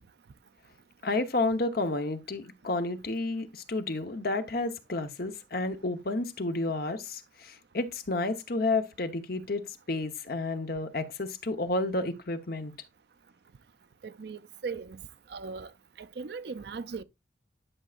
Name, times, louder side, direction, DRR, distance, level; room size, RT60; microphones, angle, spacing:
voice 1, 1.0-12.7, left 2 dB, 55° left, 1.0 m, -31 dB
voice 2, 14.0-15.0 15.3-15.7 16.0-17.0, right 5 dB, 60° right, 0.5 m, -38 dB
11.0 x 6.3 x 2.5 m
head